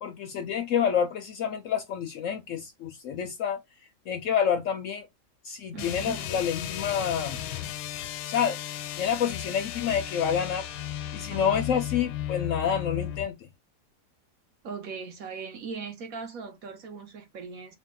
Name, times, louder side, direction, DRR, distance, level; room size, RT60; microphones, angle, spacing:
voice 1, 0.0-3.6 4.1-5.1 5.4-7.4 8.3-8.6 9.0-10.7 11.1-13.5, left 8 dB, 70° left, 0.8 m, -28 dB
sound 1, 5.7-13.3, left 11 dB, 85° left, 1.1 m, -35 dB
voice 2, 5.7-6.3 11.3-11.7 14.6-17.7, right 5 dB, 65° right, 1.2 m, -39 dB
3.5 x 2.2 x 3.6 m
omnidirectional pair, 1.7 m